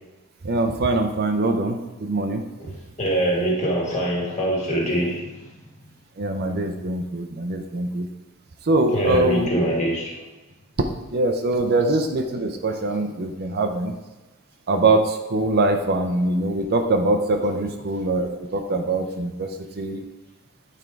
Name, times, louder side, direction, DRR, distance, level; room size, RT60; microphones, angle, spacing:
voice 1, 0.4-2.4 6.2-8.1 8.7-9.5 11.1-13.9 14.7-19.5 19.8-20.0, right 2 dB, 45° right, 5 dB, 0.6 m, -23 dB
voice 2, 2.6-5.3 8.9-10.2, right 1 dB, 35° left, -2 dB, 1.8 m, -24 dB
9.1 x 3.6 x 4.6 m, 1.1 s
head